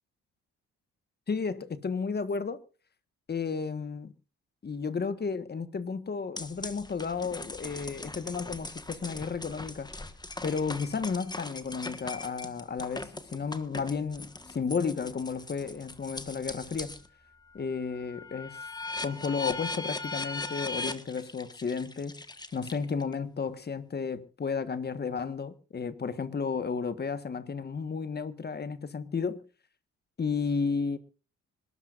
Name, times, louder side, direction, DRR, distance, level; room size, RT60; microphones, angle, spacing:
voice 1, 1.3-2.6 3.3-4.1 4.6-9.9 10.4-17.0 17.5-18.7 19.0-22.2 22.5-29.4 30.2-31.0, left 5 dB, 35° left, 1.5 m, -33 dB
sound 1, 6.4-17.1 17.5-23.1, left 2 dB, 15° left, 1.5 m, -40 dB
26.0 x 12.5 x 2.6 m
cardioid pair, 90°, 30 cm